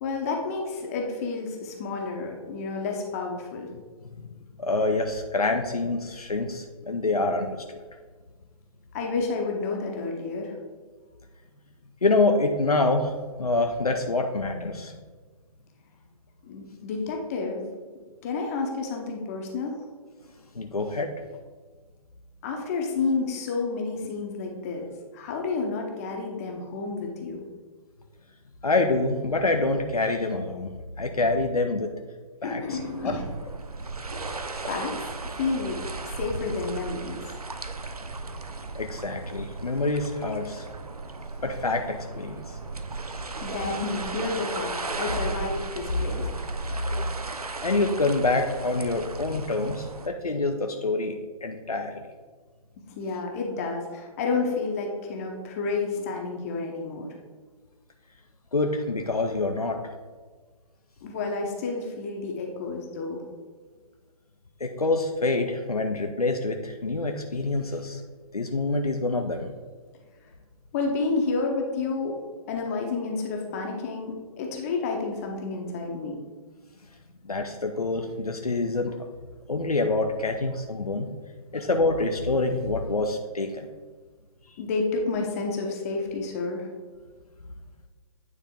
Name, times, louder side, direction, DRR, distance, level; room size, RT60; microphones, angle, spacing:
voice 1, 0.0-3.7 8.9-10.6 16.4-17.6 18.2-19.8 22.4-27.4 32.4-33.2 34.5-35.0 35.4-35.8 36.2-37.2 43.4-46.3 52.9-57.1 61.0-63.2 70.7-72.2 72.5-76.2 81.5-81.6 84.6-86.7, left 4 dB, 25° left, 1 dB, 0.8 m, -30 dB
voice 2, 4.6-7.8 12.0-15.0 20.5-21.1 28.6-30.7 31.0-31.9 32.4-32.8 33.0-33.1 38.7-40.7 41.4-42.6 47.6-52.0 58.5-59.8 64.6-68.0 68.3-69.5 77.2-79.0 79.5-81.1 81.5-83.7, left 2 dB, 80° left, 4 dB, 0.6 m, -26 dB
sound 1, 32.7-50.1, right 3 dB, 80° right, 0.6 m, -36 dB
9.3 x 3.6 x 3.6 m, 1.4 s
figure-of-eight pair, 130°, 19 cm